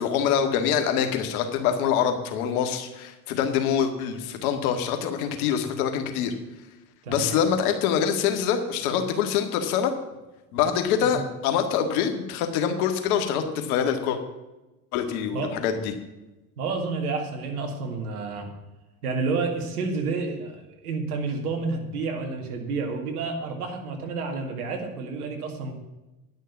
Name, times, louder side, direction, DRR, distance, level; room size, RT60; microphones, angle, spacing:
voice 1, 0.0-6.3 7.1-9.9 10.5-14.2 14.9-15.9, left 8 dB, 75° left, 6 dB, 2.0 m, -25 dB
voice 2, 16.6-18.5 19.0-25.7, right 4 dB, 90° right, 4 dB, 2.1 m, -30 dB
11.0 x 6.4 x 8.3 m, 1.0 s
hypercardioid pair, 80°, 44 cm